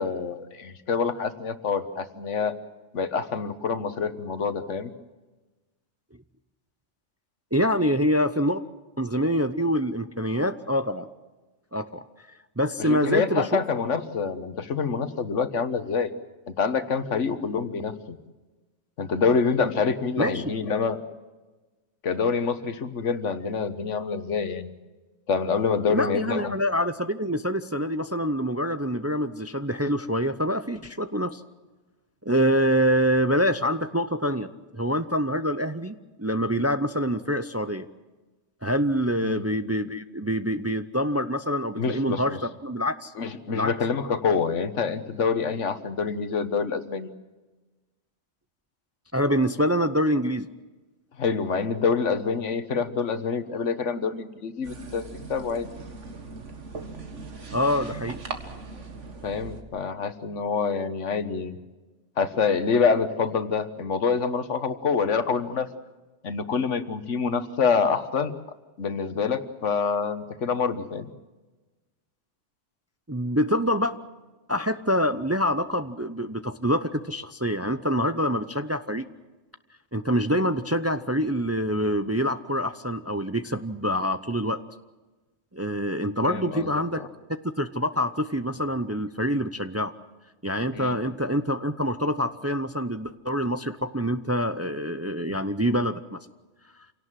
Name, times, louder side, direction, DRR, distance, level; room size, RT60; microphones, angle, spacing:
voice 1, 0.0-2.5 2.9-4.9 12.8-16.1 16.6-18.2 19.0-21.0 22.0-24.7 25.3-26.6 39.2-39.4 41.8-42.4 43.2-47.1 51.2-55.0 55.3-55.7 59.2-61.6 62.2-65.7 66.2-68.3 68.8-71.1 86.2-87.1 90.7-91.0, left 5 dB, 85° left, 11 dB, 1.6 m, -26 dB
voice 2, 7.5-8.6 9.0-11.1 11.7-12.1 12.6-13.5 20.2-20.4 25.9-31.4 32.3-37.9 38.6-43.1 43.5-43.7 49.1-50.5 57.5-58.2 73.1-73.9 74.5-79.1 79.9-84.6 85.5-87.0 87.6-89.9 90.4-96.2, equal, 15° right, 11 dB, 0.5 m, -26 dB
sound 1, 54.6-59.6, right 4 dB, 85° right, 2.1 m, -39 dB
27.0 x 17.5 x 7.6 m, 1.2 s
omnidirectional pair, 1.2 m